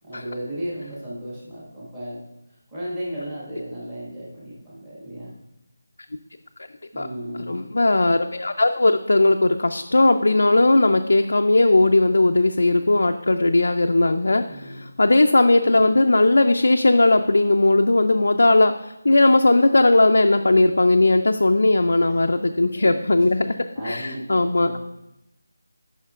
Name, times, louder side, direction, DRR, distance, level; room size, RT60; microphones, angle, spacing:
voice 1, 0.0-2.2 2.7-5.3 6.9-7.7 14.5-14.9 22.7-22.9 23.5-24.8, equal, 10° right, -8 dB, 1.5 m, -34 dB
voice 2, 7.5-23.5 23.8-24.8, left 2 dB, 70° left, 5 dB, 0.4 m, -18 dB
9.9 x 5.6 x 2.4 m, 0.88 s
figure-of-eight pair, 175°, 0 cm